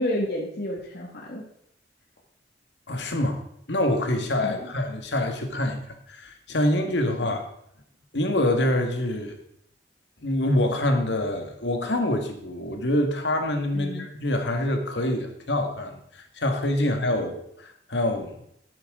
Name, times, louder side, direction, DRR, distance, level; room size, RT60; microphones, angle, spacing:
voice 1, 0.0-1.5 4.4-4.7 13.7-14.1 16.8-16.9, left 1 dB, 65° left, -2 dB, 1.8 m, -30 dB
voice 2, 2.9-3.4 3.7-5.8 6.1-7.4 8.1-9.4 10.2-18.4, left 1 dB, 80° left, 5 dB, 1.8 m, -26 dB
11.5 x 8.6 x 3.8 m, 0.73 s
head